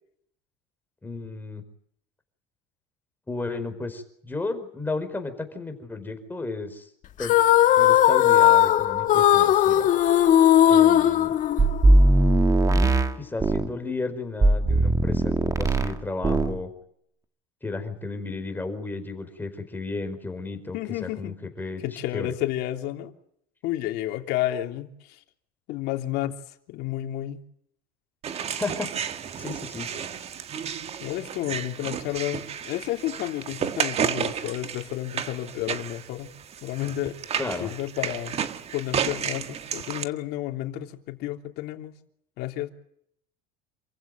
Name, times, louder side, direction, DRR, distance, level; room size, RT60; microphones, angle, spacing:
voice 1, 1.0-1.6 3.3-6.9 7.2-7.3 7.8-9.9 10.6-11.4 12.7-16.7 17.6-22.3 28.6-28.9 29.4-29.9 37.4-37.7, left 3 dB, 10° left, 4.8 m, -33 dB
sound 1, 7.2-12.0, left 11 dB, 45° left, 1.6 m, -18 dB
sound 2, 11.6-13.7 14.4-16.0 16.2-16.6, right 2 dB, 20° right, 1.9 m, -19 dB
voice 2, 20.7-21.4 21.8-23.1 23.6-25.2 25.7-26.4 26.7-27.4 31.0-36.3 36.6-37.2 37.6-38.4 38.7-41.9 42.4-42.7, left 14 dB, 60° left, 3.2 m, -31 dB
sound 3, 28.2-40.0, right 8 dB, 35° right, 1.7 m, -32 dB
28.0 x 15.5 x 9.2 m
cardioid pair, 135°, 19 cm